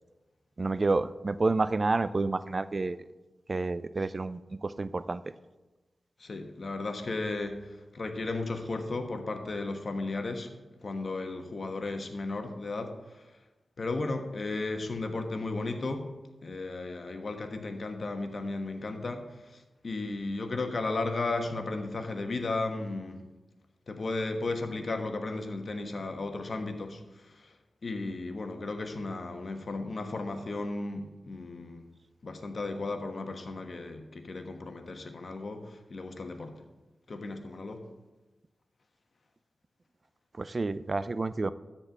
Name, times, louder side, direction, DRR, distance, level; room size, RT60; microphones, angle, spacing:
voice 1, 0.6-3.0 3.5-5.2 40.4-41.5, right 3 dB, 50° right, 15 dB, 0.4 m, -29 dB
voice 2, 6.2-10.5 10.8-13.0 13.8-16.1 16.4-23.2 23.9-27.0 27.3-27.5 27.8-31.9 32.2-36.6 37.1-37.9, left 3 dB, 60° left, 6 dB, 1.3 m, -35 dB
13.0 x 4.4 x 7.0 m, 1.1 s
cardioid pair, 40°, 0 cm